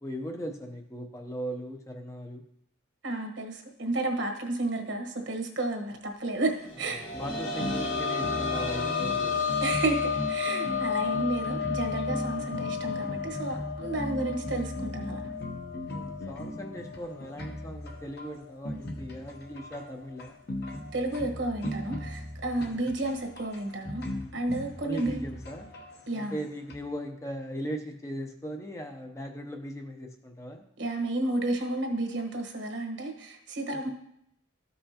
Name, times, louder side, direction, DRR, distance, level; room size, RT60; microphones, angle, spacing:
voice 1, 0.0-2.4 6.8-9.5 15.9-20.4 22.7-22.9 24.8-25.7 26.1-30.6 33.7-33.9, equal, 15° left, 3 dB, 0.6 m, -38 dB
voice 2, 3.0-7.0 9.6-15.2 20.9-24.0 24.3-25.2 26.1-26.3 30.8-33.9, right 2 dB, 60° right, 4 dB, 1.3 m, -31 dB
sound 1, 6.7-18.1 18.5-18.6 20.1-20.2, left 6 dB, 75° left, 1.3 m, -33 dB
sound 2, 7.1-26.8, left 1 dB, 50° left, 1.0 m, -38 dB
13.5 x 5.5 x 2.9 m, 0.75 s
head